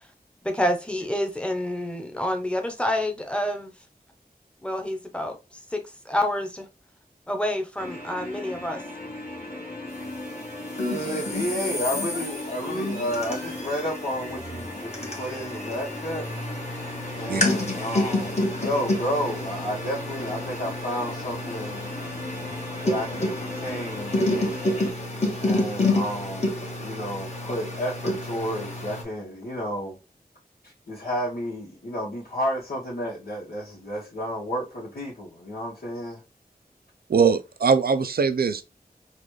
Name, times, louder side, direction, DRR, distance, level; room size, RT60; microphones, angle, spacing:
voice 1, 0.4-3.7 4.6-6.7 7.3-8.8, left 1 dB, 5° left, 0.9 m, -28 dB
sound 1, 7.8-24.9, left 2 dB, 60° left, 1.6 m, -38 dB
sound 2, 10.7-29.0, left 1 dB, 45° left, 1.2 m, -29 dB
voice 2, 10.9-16.3 17.1-21.8 22.8-24.2 25.4-30.0 30.6-36.2, equal, 80° left, 1.3 m, -31 dB
voice 3, 37.1-38.6, right 5 dB, 75° right, 0.4 m, -21 dB
3.9 x 2.4 x 3.2 m
wide cardioid pair, 65°, 16 cm